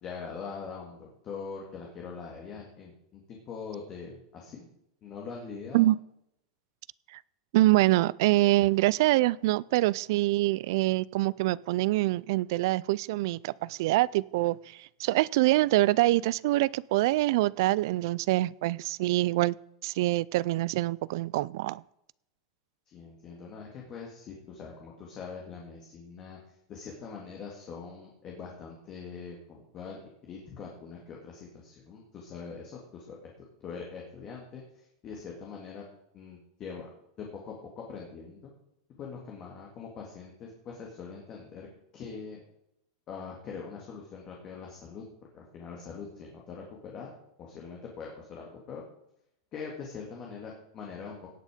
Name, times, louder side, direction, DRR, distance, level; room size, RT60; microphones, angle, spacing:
voice 1, 0.0-4.6 5.0-5.9 22.9-26.4 26.7-33.2 33.6-35.8 36.1-36.9 37.2-38.5 39.0-41.7 41.9-42.4 43.1-45.0 45.3-47.1 47.4-48.8 49.5-51.2, left 5 dB, 25° left, -1 dB, 2.0 m, -43 dB
voice 2, 7.5-19.5 19.8-21.8, right 17 dB, 50° right, 23 dB, 0.3 m, -25 dB
17.5 x 6.5 x 5.0 m, 0.78 s
supercardioid pair, 175°, 3 cm